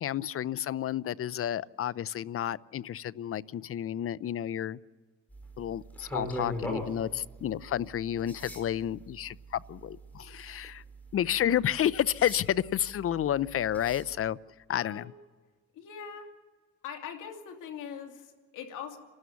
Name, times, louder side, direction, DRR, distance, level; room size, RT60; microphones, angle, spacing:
voice 1, 0.0-4.8 5.6-10.8 11.1-14.4 14.7-15.1, left 10 dB, 50° left, 20 dB, 0.5 m, -31 dB
sound 1, 5.3-14.2, equal, 5° left, 5.1 m, -42 dB
voice 2, 14.7-15.1 15.7-16.3 16.8-19.0, left 7 dB, 85° left, 3 dB, 2.6 m, -42 dB
29.0 x 13.0 x 7.1 m, 1.4 s
cardioid pair, 90°, 30 cm